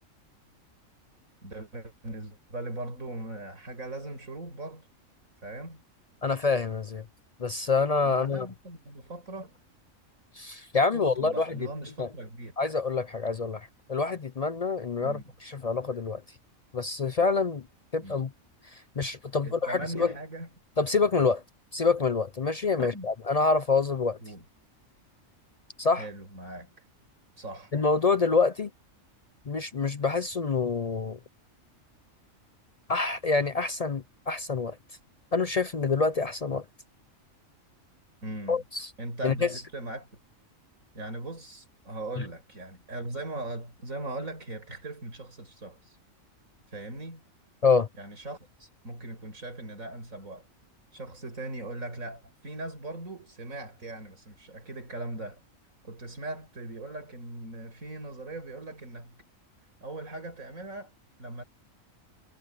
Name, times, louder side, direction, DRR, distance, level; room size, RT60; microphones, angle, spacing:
voice 1, 1.4-4.9 5.4-5.8 8.0-9.6 10.9-12.5 15.0-15.3 18.0-18.2 19.4-20.5 22.8-23.1 24.2-24.5 26.0-26.7 27.4-27.7 38.2-38.6 39.0-40.1 40.9-46.0 46.7-47.2 48.0-50.5 50.9-55.4 55.8-59.2 59.8-60.9 61.2-61.4, right 2 dB, 80° right, 5.9 m, -39 dB
voice 2, 6.2-7.0 7.4-8.5 10.4-11.7 12.0-12.1 12.6-16.2 16.7-17.6 17.9-18.3 19.0-20.1 20.8-21.4 21.7-24.2 25.8-26.1 27.7-28.7 29.5-31.2 32.9-34.8 35.3-36.6 38.5-38.9 39.2-39.5 47.6-47.9, left 4 dB, 45° left, 0.5 m, -26 dB
omnidirectional pair, 1.4 m